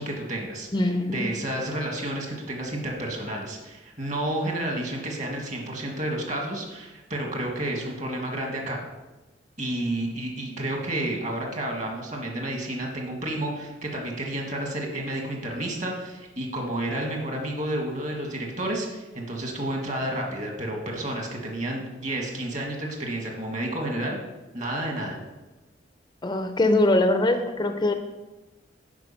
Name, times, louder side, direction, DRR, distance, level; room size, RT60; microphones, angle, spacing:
voice 1, 0.0-8.8 9.6-24.2 24.5-25.2, right 1 dB, 40° right, 1 dB, 1.7 m, -31 dB
voice 2, 0.7-1.3 26.2-27.9, left 2 dB, 25° left, 7 dB, 0.5 m, -22 dB
9.5 x 4.7 x 5.6 m, 1.1 s
head